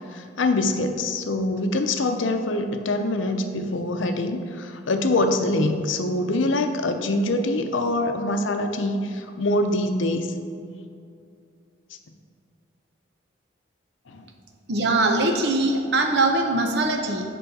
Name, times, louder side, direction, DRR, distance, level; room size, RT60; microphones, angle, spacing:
voice 1, 0.0-10.3 14.1-14.2, left 2 dB, 80° left, 6 dB, 0.6 m, -24 dB
voice 2, 14.7-17.2, right 2 dB, 60° right, 3 dB, 0.8 m, -22 dB
7.9 x 5.5 x 4.1 m, 2.4 s
head